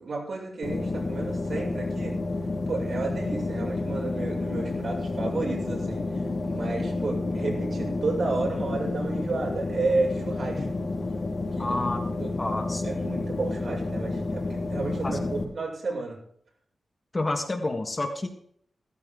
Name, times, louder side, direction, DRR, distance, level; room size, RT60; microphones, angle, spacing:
voice 1, 0.0-2.1 2.7-6.0 6.5-10.7 11.6-11.8 12.2-12.3 12.8-16.2, right 3 dB, 50° right, -1 dB, 6.9 m, -32 dB
sound 1, 0.6-15.4, left 2 dB, 45° left, 4.2 m, -30 dB
voice 2, 11.6-12.0 12.4-13.1 15.0-15.2 17.1-18.3, left 2 dB, 25° left, 5 dB, 1.8 m, -29 dB
17.0 x 14.5 x 3.9 m, 0.65 s
wide cardioid pair, 135°, 0 cm